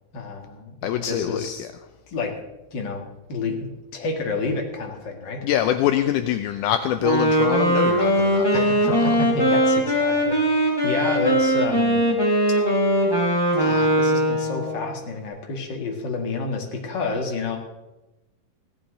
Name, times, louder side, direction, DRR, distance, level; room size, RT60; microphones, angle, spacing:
voice 1, 0.1-1.7 2.1-2.3 2.7-5.4 8.5-12.1 13.5-17.6, left 3 dB, 40° left, 2 dB, 2.1 m, -30 dB
voice 2, 0.8-1.7 5.4-9.2, left 11 dB, 80° left, 8 dB, 2.0 m, -24 dB
Wind instrument woodwind instrument, 7.0-14.9, right 1 dB, 5° left, 3.3 m, -20 dB
16.5 x 13.0 x 3.9 m, 1.0 s
omnidirectional pair, 3.8 m